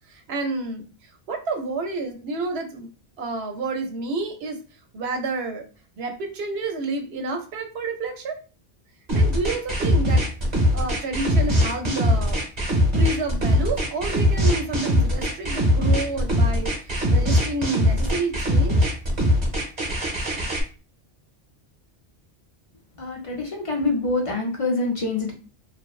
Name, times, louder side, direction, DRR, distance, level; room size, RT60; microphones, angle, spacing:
voice 1, 0.1-0.8 1.3-2.9 3.2-4.6 4.9-5.6 6.0-8.4 9.1-10.2 10.7-12.4 12.9-18.9, right 3 dB, 85° right, 4 dB, 0.8 m, -29 dB
sound 1, 9.1-20.6, equal, 45° right, 1.0 m, -21 dB
voice 2, 23.0-25.3, left 3 dB, 45° left, 0 dB, 0.5 m, -25 dB
2.9 x 2.0 x 2.3 m, 0.35 s
omnidirectional pair, 1.1 m